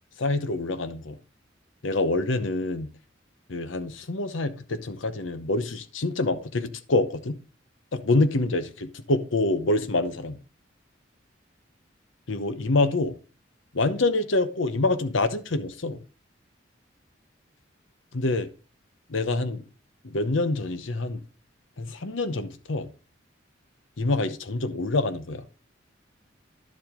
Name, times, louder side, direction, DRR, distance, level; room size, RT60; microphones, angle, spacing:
voice 1, 0.2-1.2 1.8-2.9 3.5-7.4 7.9-10.4 12.3-13.2 13.7-16.0 18.1-18.5 19.1-19.7 20.0-21.2 21.8-22.9 24.0-25.4, left 2 dB, 85° left, 0.9 m, -26 dB
11.0 x 7.5 x 3.7 m
head